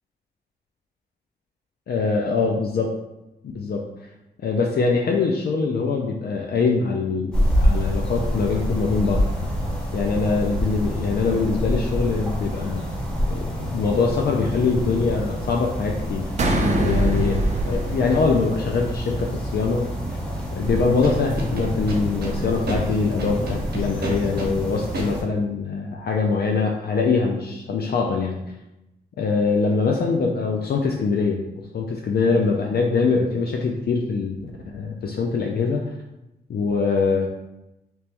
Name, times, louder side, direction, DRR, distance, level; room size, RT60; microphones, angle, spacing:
voice 1, 1.9-2.9 3.5-3.8 4.4-9.5 9.9-12.9 13.3-16.3 16.7-19.9 20.5-28.4 29.2-31.4 31.7-35.9 36.5-37.3, left 4 dB, 60° left, 1 dB, 0.4 m, -23 dB
sound 1, 7.3-25.2, equal, 5° left, 0.9 m, -27 dB
sound 2, 16.4-19.0, right 1 dB, 40° right, 0.5 m, -23 dB
Scratching (performance technique), 21.0-22.3 22.7-22.8 23.2-24.5 24.9-25.1, right 3 dB, 60° right, 1.0 m, -29 dB
3.0 x 2.9 x 3.3 m, 0.93 s
wide cardioid pair, 95°, 18 cm